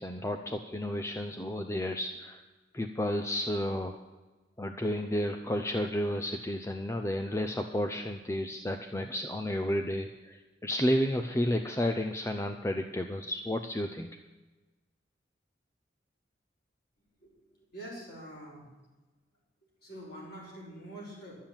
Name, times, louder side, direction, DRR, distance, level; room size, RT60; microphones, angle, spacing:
voice 1, 0.0-2.4 2.7-4.0 4.6-14.1, left 1 dB, 15° left, 6 dB, 0.5 m, -32 dB
voice 2, 17.7-18.6 19.8-21.4, right 1 dB, 55° left, -5 dB, 5.1 m, -45 dB
12.0 x 7.4 x 8.8 m, 1.2 s
head